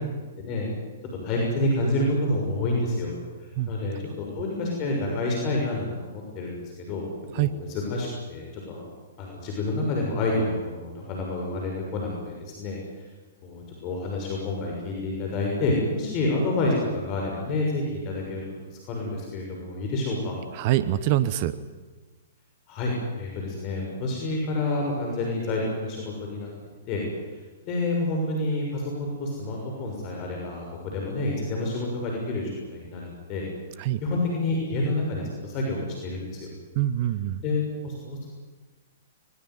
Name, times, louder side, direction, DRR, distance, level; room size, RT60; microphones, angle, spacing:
voice 1, 0.4-0.7 1.2-3.1 3.4-7.1 7.3-8.9 9.2-13.1 13.4-18.4 18.7-20.4 22.7-22.9 23.2-26.5 26.9-27.0 27.6-33.4 34.0-36.5 37.4-38.3, left 2 dB, 35° left, -1 dB, 6.5 m, -28 dB
voice 2, 20.5-21.6 33.8-34.0 36.7-37.4, right 13 dB, 45° right, 14 dB, 1.0 m, -24 dB
22.0 x 21.0 x 9.6 m, 1.3 s
figure-of-eight pair, 115°, 0 cm